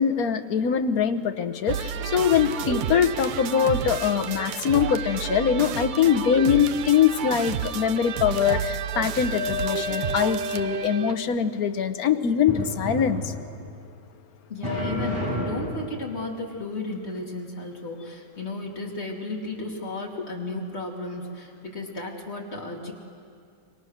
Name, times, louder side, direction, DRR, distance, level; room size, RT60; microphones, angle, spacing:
voice 1, 0.0-13.3, left 8 dB, 70° left, 10 dB, 1.4 m, -23 dB
sound 1, 1.7-11.2, right 8 dB, 85° right, 1.4 m, -31 dB
sound 2, 9.4-11.3 12.5-13.7 14.6-16.0, left 2 dB, 15° right, 6.8 m, -31 dB
voice 2, 14.5-22.9, left 2 dB, 40° left, -1 dB, 3.2 m, -34 dB
28.0 x 23.5 x 6.5 m, 2.4 s
omnidirectional pair, 1.7 m